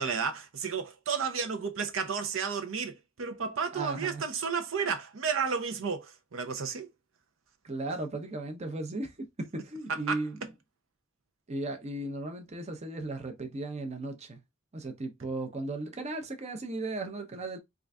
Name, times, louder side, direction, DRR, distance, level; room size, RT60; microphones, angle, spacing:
voice 1, 0.0-6.9 10.1-10.2, right 6 dB, 75° right, 0.6 m, -32 dB
voice 2, 3.7-4.2 7.6-10.4 11.5-14.4 14.7-17.6, right 2 dB, 35° right, 0.7 m, -36 dB
3.8 x 2.5 x 3.3 m
head